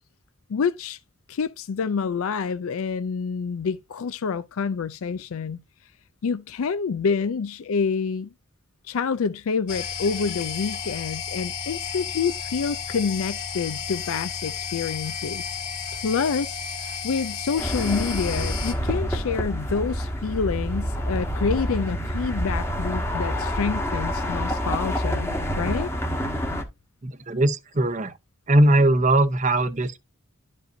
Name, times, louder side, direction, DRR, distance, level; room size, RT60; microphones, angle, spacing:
voice 1, 0.5-1.0 1.3-5.6 6.2-8.3 8.8-15.6 16.0-25.9, left 5 dB, 75° left, 0.4 m, -27 dB
sound 1, 9.7-18.7, left 6 dB, 35° left, 2.2 m, -33 dB
sound 2, 17.6-26.6, equal, 10° left, 1.2 m, -27 dB
voice 2, 27.0-28.2 28.5-30.0, right 1 dB, 35° right, 0.7 m, -20 dB
12.0 x 5.3 x 2.6 m
head